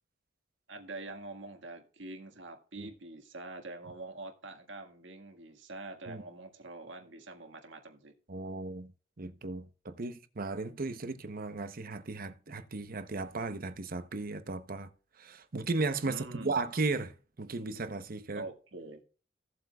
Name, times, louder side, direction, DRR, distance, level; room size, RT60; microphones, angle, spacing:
voice 1, 0.7-8.1 16.0-16.6 18.3-19.0, right 2 dB, 75° right, 1.8 m, -45 dB
voice 2, 8.3-8.9 9.2-14.9 15.2-18.5, right 3 dB, 50° right, 0.9 m, -36 dB
16.5 x 7.7 x 2.3 m
head